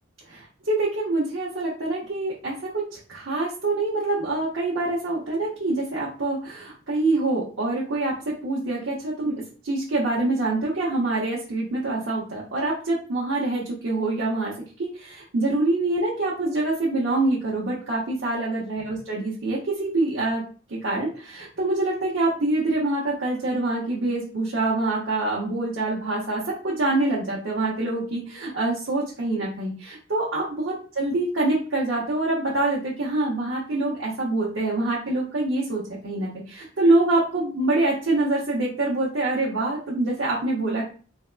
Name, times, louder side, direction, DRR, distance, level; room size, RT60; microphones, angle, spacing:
voice 1, 0.3-14.5 14.8-20.4 20.7-40.9, right 2 dB, 75° right, -6 dB, 0.8 m, -25 dB
3.4 x 2.2 x 2.4 m, 0.39 s
head